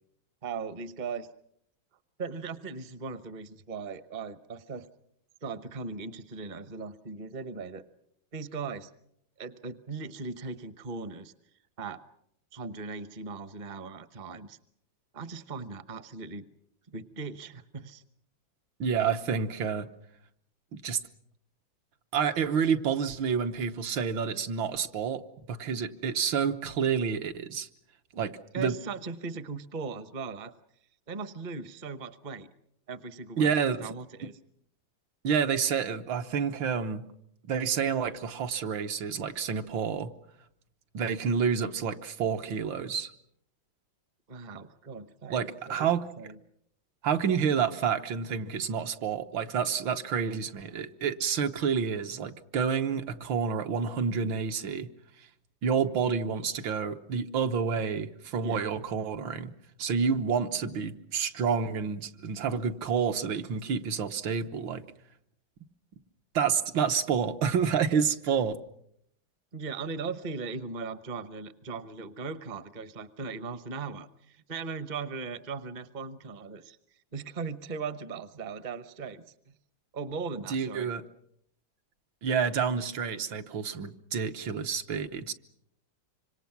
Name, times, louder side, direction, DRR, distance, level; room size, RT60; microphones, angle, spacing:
voice 1, 0.4-1.3 2.2-4.9 5.4-7.9 8.3-8.9 9.4-11.3 11.8-12.0 12.5-14.6 15.1-16.5 16.9-18.0 28.5-30.5 31.1-32.5 32.9-34.4 44.3-46.4 58.4-58.6 69.5-76.8 77.1-79.5 79.9-80.9, right 4 dB, 35° right, 13 dB, 0.7 m, -38 dB
voice 2, 18.8-19.9 20.8-21.0 22.1-25.2 25.5-27.7 28.1-28.7 33.4-33.9 35.2-37.0 37.5-40.1 40.9-43.1 45.3-46.0 47.0-54.9 55.6-59.5 59.8-64.8 66.4-68.6 80.5-81.0 82.2-85.3, right 6 dB, 70° right, 7 dB, 1.8 m, -29 dB
25.5 x 25.5 x 6.0 m, 0.73 s
omnidirectional pair, 2.2 m